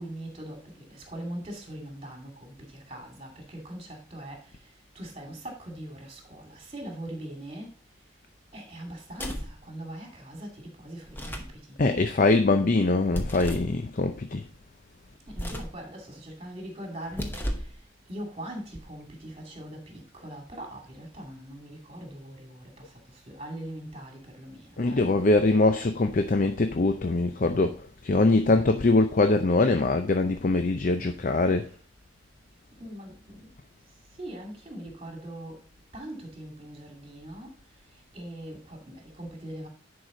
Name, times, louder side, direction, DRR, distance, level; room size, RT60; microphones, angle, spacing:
voice 1, 0.0-4.6 4.9-7.7 8.5-11.8 15.3-17.7 18.1-25.1 31.6-31.8 32.8-33.5 34.2-35.6 35.9-37.5 38.1-39.7, right 1 dB, 30° right, 2.4 m, -41 dB
sound 1, 9.1-9.6 11.0-11.6 13.1-13.7 15.3-15.8 17.0-17.8, equal, 10° left, 0.9 m, -34 dB
voice 2, 11.8-14.4 24.8-27.8 28.0-31.7, left 2 dB, 40° left, 0.5 m, -23 dB
10.5 x 4.8 x 3.8 m
head